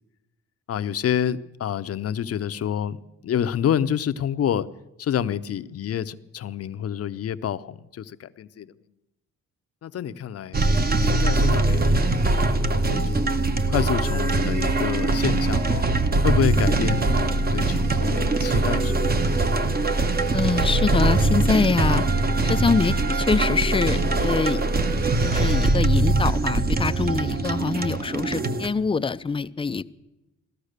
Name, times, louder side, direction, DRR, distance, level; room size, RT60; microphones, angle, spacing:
voice 1, 0.7-4.7 5.0-8.7 9.8-10.6 11.0-13.3 13.6-15.8 16.2-19.2, left 9 dB, 50° left, 0.7 m, -28 dB
sound 1, 10.5-28.7, right 2 dB, 30° right, 1.1 m, -22 dB
voice 2, 20.3-22.0 22.4-24.6 25.2-29.8, left 4 dB, 15° left, 0.5 m, -24 dB
16.5 x 13.0 x 6.7 m
cardioid pair, 90°, 30 cm